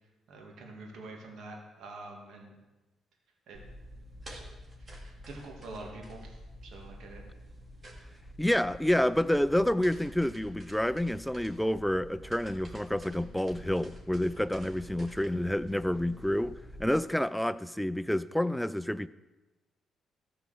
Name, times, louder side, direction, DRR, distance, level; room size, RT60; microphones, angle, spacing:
voice 1, 0.3-2.5 3.5-3.6 4.3-4.4 4.9-6.3 6.6-7.2, right 2 dB, 70° right, 2.4 m, -46 dB
sound 1, 3.5-16.9, equal, 35° right, 3.0 m, -48 dB
voice 2, 8.4-19.1, left 1 dB, 5° left, 0.4 m, -29 dB
13.5 x 4.8 x 6.7 m
hypercardioid pair, 50°, 0 cm